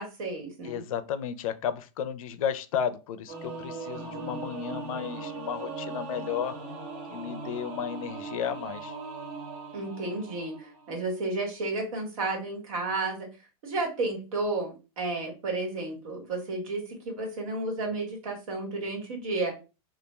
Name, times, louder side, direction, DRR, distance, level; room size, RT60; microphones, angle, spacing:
voice 1, 0.0-0.8 9.7-13.3 13.6-19.5, right 2 dB, 70° right, 0 dB, 1.4 m, -32 dB
voice 2, 0.6-6.6 7.1-9.0, left 8 dB, 70° left, 12 dB, 0.4 m, -33 dB
Singing / Musical instrument, 3.3-11.0, right 3 dB, 30° right, 0.7 m, -39 dB
2.3 x 2.2 x 3.0 m, 0.31 s
supercardioid pair, 155°, 18 cm